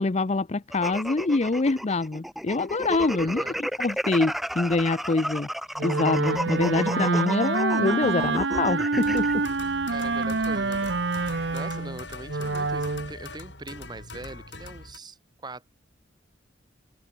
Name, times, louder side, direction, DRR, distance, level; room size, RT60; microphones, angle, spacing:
voice 1, 0.0-5.5 5.8-9.4, left 3 dB, 35° left, 0.6 m, -25 dB
sound 1, 0.7-9.3, equal, ahead, 0.7 m, -33 dB
voice 2, 3.2-3.6 9.9-15.7, right 2 dB, 25° right, 1.5 m, -42 dB
Wind instrument woodwind instrument, 5.8-13.1, right 3 dB, 70° right, 1.1 m, -27 dB
sound 2, 9.0-15.0, left 3 dB, 75° left, 5.9 m, -41 dB
head